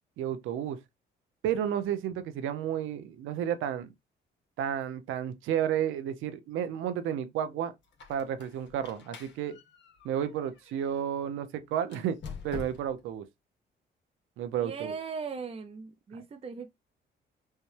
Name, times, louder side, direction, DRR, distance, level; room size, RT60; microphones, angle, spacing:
voice 1, 0.2-0.8 1.4-3.9 4.6-7.7 8.1-9.6 10.0-12.2 12.4-13.2 14.4-14.9, right 9 dB, 90° right, 0.7 m, -32 dB
Squeak, 7.8-11.0 11.8-13.1, left 6 dB, 65° left, 1.2 m, -46 dB
voice 2, 14.6-16.7, right 5 dB, 30° right, 0.5 m, -38 dB
5.5 x 2.2 x 3.2 m
cardioid pair, 90°, 20 cm